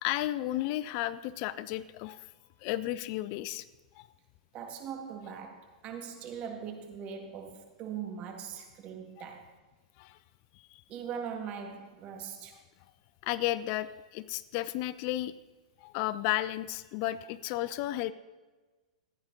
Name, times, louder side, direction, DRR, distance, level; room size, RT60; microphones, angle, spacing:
voice 1, 0.0-2.2 2.6-3.6 4.0-4.1 9.2-9.3 10.0-10.2 10.7-10.8 13.2-15.3 15.8-18.1, left 15 dB, 45° left, 0.5 m, -33 dB
voice 2, 4.5-9.5 10.9-12.6, right 7 dB, 35° right, 1.9 m, -41 dB
15.0 x 9.5 x 3.9 m
hypercardioid pair, 110°, 4 cm